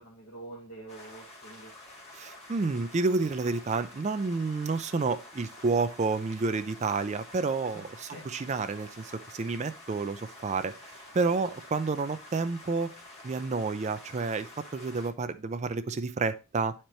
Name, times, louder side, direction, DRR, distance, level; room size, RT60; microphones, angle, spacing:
voice 1, 0.0-1.7 7.7-7.8 8.1-8.2 11.3-11.4, right 2 dB, 70° left, -5 dB, 1.8 m, -45 dB
sound 1, 0.9-15.1, left 2 dB, 30° left, 2.0 m, -49 dB
voice 2, 2.1-10.7 11.1-12.9 13.2-16.7, right 4 dB, 30° right, 12 dB, 0.4 m, -30 dB
10.0 x 4.4 x 3.1 m, 0.30 s
head